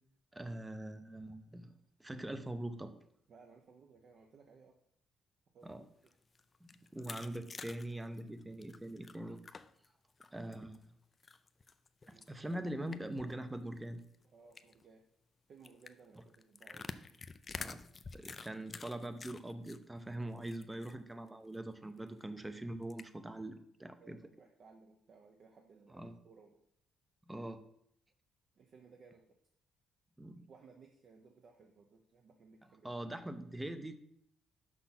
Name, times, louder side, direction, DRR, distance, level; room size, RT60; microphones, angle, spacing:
voice 1, 0.3-1.7 2.0-2.9 5.6-5.8 6.6-9.4 10.3-10.8 12.1-14.0 17.6-17.8 18.1-24.2 25.9-26.1 27.3-27.6 30.2-30.5 32.8-34.0, right 1 dB, 10° right, 10 dB, 0.6 m, -43 dB
voice 2, 3.3-4.8 5.5-5.8 12.1-12.3 14.2-15.0 15.5-17.0 20.3-20.4 24.0-26.6 28.5-29.4 30.5-33.0, right 5 dB, 50° right, 3 dB, 0.8 m, -60 dB
sound 1, 5.9-9.9 10.2-10.8 11.2-13.3 13.6-13.7 14.0-14.2 14.5-14.8 15.6-19.8 20.1-20.9 21.3-21.4 21.7-21.8 22.8-23.0, left 4 dB, 25° left, 0.4 m, -48 dB
6.2 x 5.6 x 5.9 m, 0.72 s
cardioid pair, 125°, 0 cm